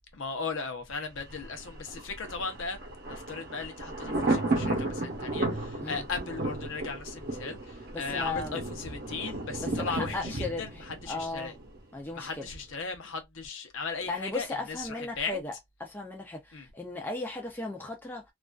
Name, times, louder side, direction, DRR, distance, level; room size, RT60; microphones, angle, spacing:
voice 1, 0.1-2.8 3.1-10.3 10.6-11.5 12.1-15.4 16.5-16.7, left 4 dB, 65° left, 0.7 m, -37 dB
Thunder, 1.2-12.1 12.4-12.5, right 2 dB, 50° right, 0.8 m, -34 dB
voice 2, 7.9-8.6 9.6-11.5 11.9-12.5 14.0-15.5 15.8-18.2, left 3 dB, 10° left, 0.4 m, -36 dB
2.4 x 2.3 x 2.3 m
head